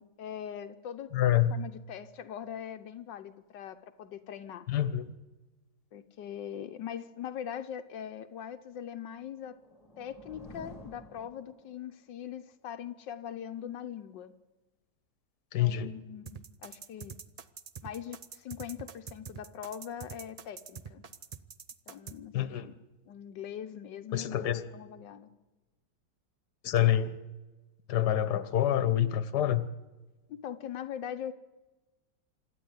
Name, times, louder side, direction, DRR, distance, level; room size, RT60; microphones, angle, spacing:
voice 1, 0.0-4.7 5.9-9.6 10.0-14.3 15.6-17.2 17.8-21.0 21.9-22.7 23.1-25.3 30.3-31.3, left 9 dB, 85° left, 7 dB, 1.6 m, -41 dB
voice 2, 1.1-1.6 4.7-5.0 15.5-15.9 22.3-22.7 24.1-24.6 26.6-27.2 27.9-29.7, left 11 dB, 70° left, 13 dB, 1.6 m, -27 dB
sound 1, 9.3-12.0, left 1 dB, 20° left, 2.0 m, -51 dB
sound 2, 16.3-22.2, right 6 dB, 75° right, 0.3 m, -44 dB
26.5 x 12.0 x 9.7 m, 1.2 s
omnidirectional pair, 1.9 m